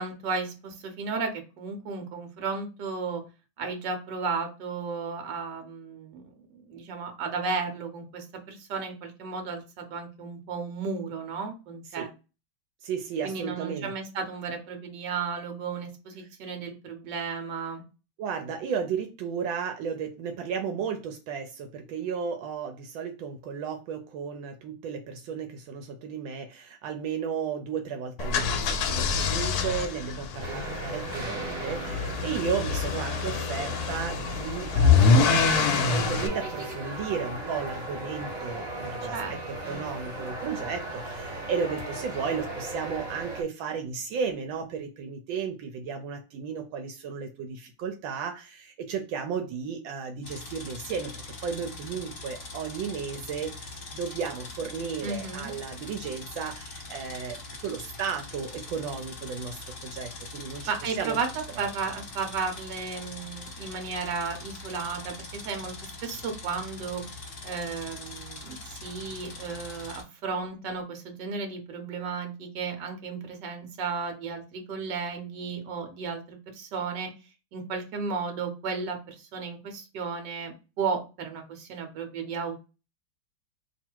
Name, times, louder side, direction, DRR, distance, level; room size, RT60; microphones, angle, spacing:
voice 1, 0.0-3.2 3.6-6.2 6.7-12.1 13.2-17.8 39.1-39.8 55.0-55.5 60.6-61.3 61.6-67.0 67.4-77.1 77.5-82.6, right 5 dB, 70° right, 5 dB, 1.5 m, -34 dB
voice 2, 12.8-13.9 18.2-39.2 39.5-60.7 61.0-61.2 61.6-61.7, right 6 dB, 85° right, 5 dB, 1.4 m, -34 dB
sound 1, 28.2-36.3, left 5 dB, 70° left, 0.9 m, -25 dB
sound 2, 30.4-43.4, right 2 dB, 35° right, 1.3 m, -37 dB
sound 3, 50.2-70.0, left 3 dB, 40° left, 0.8 m, -42 dB
3.2 x 2.4 x 4.4 m, 0.31 s
omnidirectional pair, 2.1 m